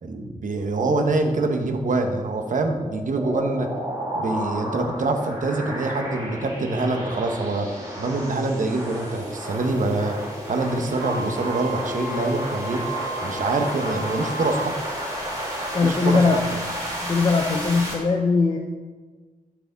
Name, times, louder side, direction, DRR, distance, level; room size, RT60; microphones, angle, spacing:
voice 1, 0.0-3.7 4.1-10.2 10.5-12.9 13.2-14.7 15.8-16.6, right 2 dB, 60° right, 5 dB, 1.0 m, -25 dB
sound 1, 3.2-17.9, equal, 25° right, 2.4 m, -32 dB
Wind instrument woodwind instrument, 11.0-14.7, right 3 dB, 80° right, 1.4 m, -34 dB
voice 2, 15.7-16.4 17.0-18.6, left 4 dB, 35° left, 1 dB, 0.6 m, -20 dB
12.0 x 4.8 x 4.0 m, 1.4 s
wide cardioid pair, 100°, 15 cm